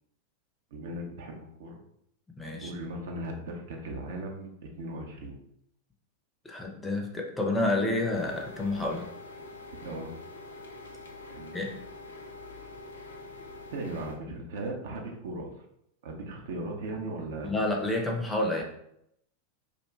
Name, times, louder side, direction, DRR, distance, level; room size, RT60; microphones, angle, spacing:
voice 1, 0.7-1.8 2.6-5.4 9.8-10.1 11.3-11.6 13.7-15.5 16.0-17.5, right 2 dB, 55° right, 1 dB, 0.5 m, -37 dB
voice 2, 2.4-2.7 6.4-9.1 11.5-11.7 17.4-18.6, left 2 dB, 10° left, 1 dB, 0.5 m, -29 dB
sound 1, 8.1-14.2, left 2 dB, 70° left, 0.4 m, -45 dB
2.5 x 2.1 x 3.1 m, 0.75 s
figure-of-eight pair, 90°, 0 cm